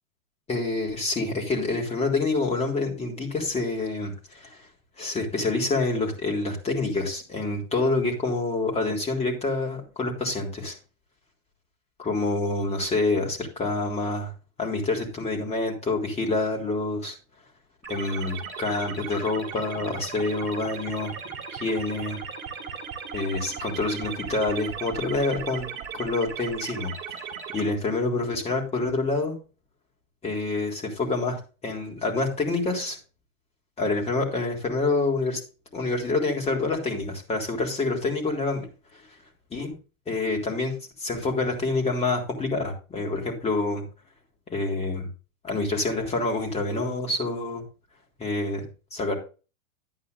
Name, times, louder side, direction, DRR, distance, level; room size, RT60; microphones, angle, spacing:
voice 1, 0.5-4.6 5.0-10.7 12.0-14.3 14.6-17.2 17.9-21.1 21.5-22.2 23.1-25.7 25.9-27.2 27.5-29.4 30.2-33.0 33.8-35.4 35.7-38.7 39.5-39.7 40.1-40.7 41.0-43.8 44.5-45.1 45.4-47.6 48.2-48.7 48.9-49.2, left 3 dB, 15° left, 0 dB, 3.6 m, -27 dB
sound 1, 17.8-27.6, right 7 dB, 25° right, 3.9 m, -37 dB
12.0 x 9.8 x 2.6 m, 0.34 s
hypercardioid pair, 135°, 42 cm